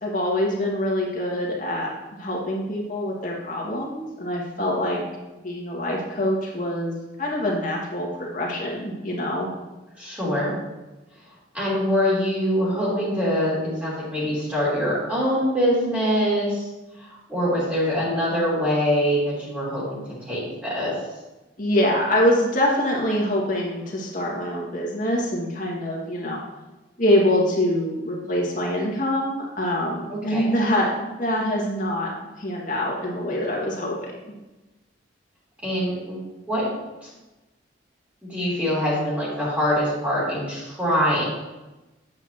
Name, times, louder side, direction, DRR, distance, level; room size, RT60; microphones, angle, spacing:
voice 1, 0.0-1.9 2.2-5.0 5.4-9.5 21.6-26.4 27.0-32.1 32.4-34.1, left 1 dB, 45° left, -3 dB, 2.0 m, -24 dB
voice 2, 10.0-10.5 11.5-13.5 13.8-16.7 17.3-20.0 20.3-20.9 30.1-30.5 35.6-36.2 36.5-37.1 38.3-41.2, equal, 10° right, -7 dB, 3.1 m, -24 dB
8.9 x 7.9 x 2.9 m, 1.1 s
head